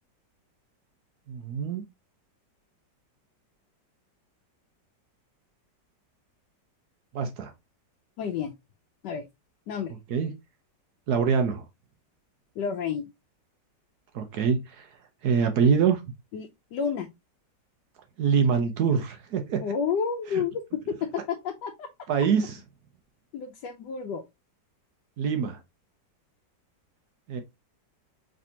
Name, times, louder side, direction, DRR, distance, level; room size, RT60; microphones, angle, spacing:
voice 1, 1.3-1.8 7.1-7.5 10.1-10.3 11.1-11.6 14.1-14.9 15.2-16.0 18.2-19.6 22.1-22.6 25.2-25.6 27.3-27.4, right 6 dB, 65° right, 1.2 m, -24 dB
voice 2, 8.2-8.5 9.0-9.2 9.7-9.9 12.6-13.0 16.3-17.1 19.6-21.9 23.3-24.2, left 6 dB, 75° left, 1.2 m, -30 dB
5.1 x 3.3 x 2.7 m
omnidirectional pair, 1.9 m